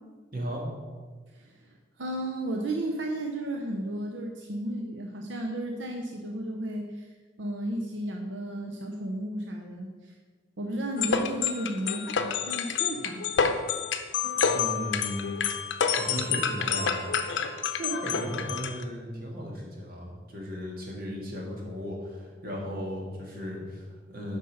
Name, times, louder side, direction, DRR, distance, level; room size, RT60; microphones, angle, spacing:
voice 1, 0.3-0.7 14.5-15.4 15.8-17.2 17.7-24.4, equal, 55° right, -2 dB, 1.9 m, -36 dB
voice 2, 1.3-7.1 7.4-10.1 10.6-12.1 12.5-13.4, right 1 dB, 85° right, 2 dB, 0.7 m, -33 dB
sound 1, 11.0-18.8, left 6 dB, 85° left, 0.6 m, -28 dB
7.8 x 5.4 x 5.2 m, 1.4 s
head